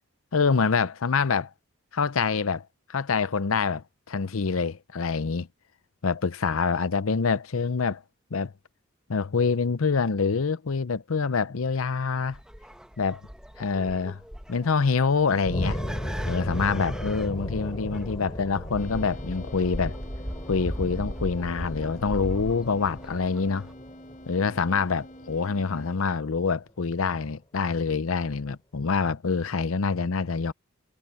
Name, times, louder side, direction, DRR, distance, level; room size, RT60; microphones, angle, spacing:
voice 1, 0.3-1.5 1.9-5.5 6.0-8.0 8.3-8.5 9.1-12.4 13.0-13.2 13.6-14.2 14.5-15.8 16.2-20.0 20.5-23.7 24.3-30.5, left 5 dB, 85° left, 0.7 m, -26 dB
sound 1, 12.3-23.7, equal, 5° right, 1.5 m, -38 dB
sound 2, 15.5-26.2, equal, 20° left, 6.1 m, -36 dB
sound 3, 18.8-26.0, equal, 40° left, 4.8 m, -48 dB
head